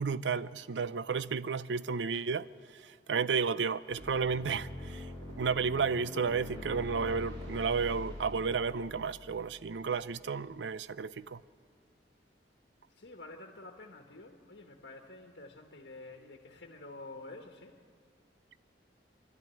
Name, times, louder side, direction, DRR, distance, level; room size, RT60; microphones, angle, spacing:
voice 1, 0.0-2.5 2.7-5.1 5.4-11.4, right 5 dB, 85° right, 0.5 m, -32 dB
sound 1, 3.9-10.6, left 1 dB, 25° right, 6.4 m, -44 dB
voice 2, 12.9-17.8, left 2 dB, 80° left, 1.3 m, -49 dB
24.5 x 12.0 x 9.0 m
head